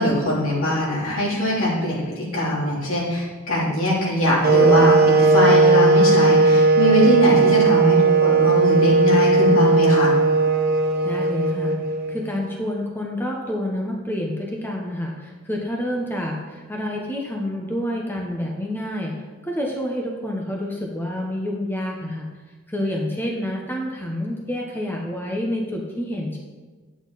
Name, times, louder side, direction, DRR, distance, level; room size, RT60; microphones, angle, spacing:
voice 1, 0.0-10.1, left 1 dB, 70° left, -5 dB, 3.3 m, -21 dB
sound 1, 4.4-12.4, right 3 dB, 45° right, 0.9 m, -17 dB
voice 2, 11.0-11.8 12.1-19.1 19.4-22.3 22.7-26.4, left 1 dB, 10° left, -1 dB, 1.0 m, -28 dB
10.5 x 8.4 x 4.1 m, 1.4 s
head